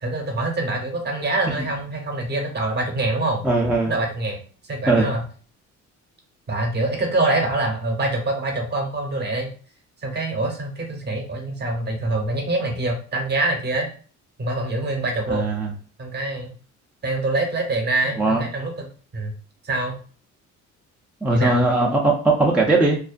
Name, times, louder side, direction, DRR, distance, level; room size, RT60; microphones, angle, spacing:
voice 1, 0.0-3.4 3.9-4.4 4.7-5.2 6.5-9.5 10.0-13.9 14.4-15.5 16.0-16.5 17.0-19.3 19.6-20.0 21.3-21.6, right 2 dB, 35° right, 2 dB, 0.7 m, -25 dB
voice 2, 3.4-3.9 4.9-5.1 15.3-15.7 18.2-18.4 21.2-23.0, right 2 dB, 5° right, -2 dB, 0.4 m, -19 dB
2.4 x 2.1 x 2.4 m, 0.40 s
cardioid pair, 90°, 30 cm